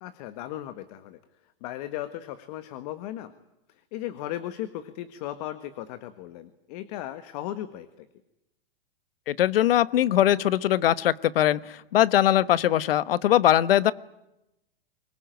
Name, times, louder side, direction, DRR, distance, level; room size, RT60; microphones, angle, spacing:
voice 1, 0.0-3.3 3.7-8.1, left 13 dB, 40° left, 12 dB, 1.6 m, -37 dB
voice 2, 9.3-13.9, left 12 dB, 75° left, 18 dB, 1.2 m, -21 dB
24.5 x 21.5 x 9.2 m, 0.90 s
hypercardioid pair, 155°, 29 cm